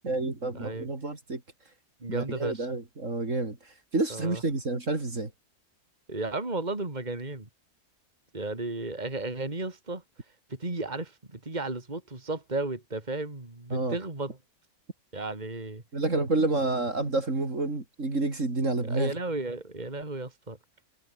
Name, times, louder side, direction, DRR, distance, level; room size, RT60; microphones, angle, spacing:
voice 1, 0.0-1.4 2.1-5.3 13.7-14.0 15.9-19.1, right 2 dB, 55° right, 4.1 m, -29 dB
voice 2, 0.5-0.9 2.0-2.7 4.1-4.4 6.1-7.5 8.3-10.0 10.5-14.3 15.1-15.8 18.8-20.6, right 2 dB, 30° right, 3.4 m, -34 dB
omnidirectional pair, 1.6 m